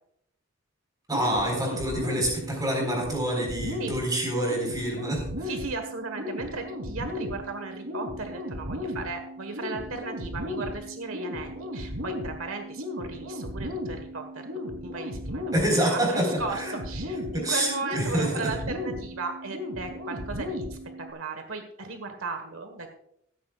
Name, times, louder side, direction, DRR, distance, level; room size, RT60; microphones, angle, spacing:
voice 1, 1.1-5.5 15.5-16.7 17.3-18.5, right 1 dB, 20° right, 0 dB, 4.3 m, -27 dB
sound 1, 1.1-21.1, left 1 dB, 65° right, 3.1 m, -36 dB
voice 2, 5.4-22.9, right 3 dB, 90° right, 6 dB, 1.4 m, -36 dB
16.0 x 14.0 x 2.4 m, 0.74 s
head